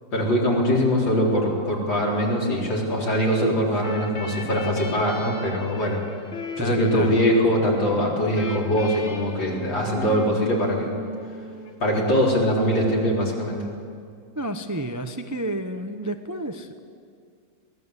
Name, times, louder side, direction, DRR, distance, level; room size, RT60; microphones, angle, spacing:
voice 1, 0.1-6.0 6.6-10.9 11.8-13.7, equal, 80° left, -3 dB, 5.1 m, -22 dB
sound 1, 3.8-12.3, left 2 dB, 40° left, 1.6 m, -37 dB
voice 2, 6.6-7.1 14.4-16.8, right 1 dB, 20° right, 6 dB, 0.5 m, -30 dB
23.0 x 18.5 x 8.3 m, 2.2 s
omnidirectional pair, 2.0 m